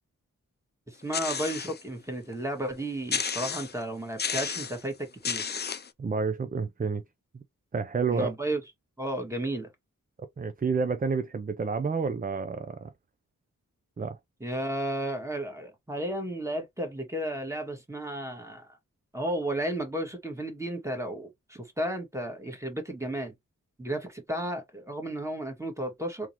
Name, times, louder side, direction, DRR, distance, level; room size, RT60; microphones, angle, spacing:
voice 1, 0.9-5.4 8.1-8.6 9.0-9.7 14.4-18.8 19.1-23.3 23.8-26.3, right 1 dB, 10° right, 1.7 m, -33 dB
sound 1, 1.1-1.8 2.3-2.4 3.1-3.8 4.2-4.8 5.2-5.9, left 6 dB, 30° left, 0.4 m, -32 dB
voice 2, 6.0-7.0 7.3-7.4 7.7-8.3 10.4-12.9 14.0-14.2, right 5 dB, 25° right, 0.5 m, -29 dB
3.7 x 3.0 x 2.9 m
wide cardioid pair, 60°, 32 cm